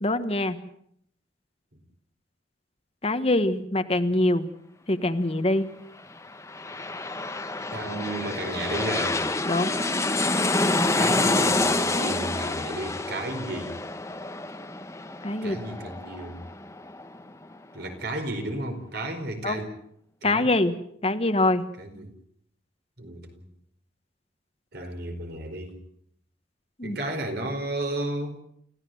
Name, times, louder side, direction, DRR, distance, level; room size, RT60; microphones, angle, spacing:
voice 1, 0.0-0.6 3.0-4.5 4.9-5.7 9.5-9.7 15.2-15.6 19.4-19.6 20.2-20.7 21.0-21.6 26.8-27.0, left 2 dB, 30° left, 9 dB, 1.3 m, -24 dB
sound 1, 6.2-17.5 17.9-18.0, left 2 dB, 15° left, 1.1 m, -28 dB
voice 2, 7.7-9.2 11.0-13.7 15.4-16.4 17.7-19.7 20.2-20.5 21.8-22.1 23.0-23.5 24.7-25.8 26.8-28.4, right 1 dB, 60° right, 5 dB, 4.6 m, -33 dB
29.5 x 15.5 x 7.9 m, 0.68 s
head